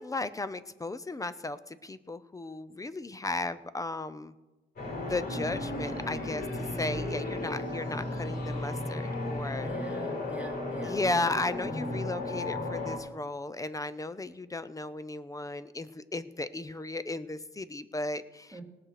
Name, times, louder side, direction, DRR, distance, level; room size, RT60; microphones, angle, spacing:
voice 1, 0.0-4.3 5.0-6.5 6.7-9.7 10.8-18.6, left 2 dB, 15° left, 14 dB, 0.6 m, -35 dB
sound 1, 4.8-13.0, left 2 dB, 55° left, 4.5 m, -34 dB
voice 2, 9.6-11.0 11.6-12.0 18.5-18.6, right 1 dB, 5° right, -2 dB, 2.3 m, -42 dB
18.0 x 6.7 x 5.8 m, 1.1 s
cardioid pair, 90°, 20 cm